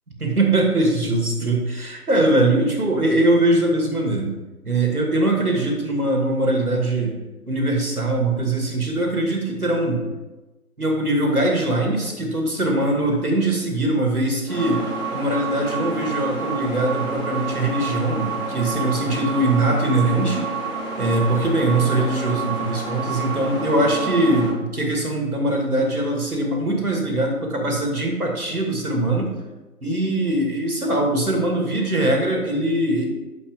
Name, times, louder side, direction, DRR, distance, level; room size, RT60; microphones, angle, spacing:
voice 1, 0.2-4.3 4.6-7.1 7.5-10.0 10.8-20.5 21.0-29.3 29.8-33.1, right 1 dB, 70° right, 0 dB, 2.5 m, -21 dB
sound 1, 14.5-24.5, right 4 dB, 20° left, 2.3 m, -29 dB
8.9 x 6.9 x 3.8 m, 1.1 s
figure-of-eight pair, 180°, 46 cm